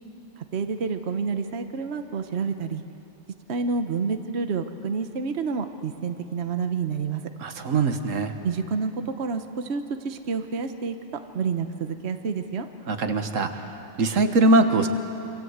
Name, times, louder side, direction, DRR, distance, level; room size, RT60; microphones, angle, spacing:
voice 1, 0.5-2.8 3.5-7.2 8.4-11.0 11.3-12.7, right 5 dB, 60° right, 7 dB, 1.3 m, -28 dB
voice 2, 7.4-8.3 12.9-13.5 14.0-14.9, right 2 dB, 85° right, 7 dB, 1.7 m, -21 dB
27.0 x 25.0 x 8.1 m, 2.9 s
omnidirectional pair, 1.3 m